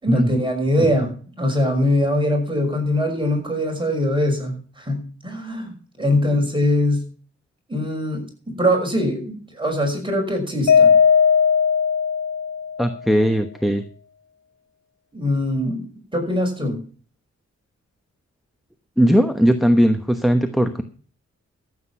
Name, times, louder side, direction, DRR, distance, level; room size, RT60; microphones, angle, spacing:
voice 1, 0.0-7.0 7.7-10.9 15.1-15.8 16.1-16.8, left 1 dB, 15° right, 2 dB, 5.9 m, -22 dB
Mallet percussion, 10.7-12.9, left 6 dB, 80° left, 0.8 m, -17 dB
voice 2, 12.8-13.8 19.0-20.8, equal, ahead, 8 dB, 1.1 m, -18 dB
14.0 x 8.2 x 5.7 m, 0.42 s
wide cardioid pair, 105°, 29 cm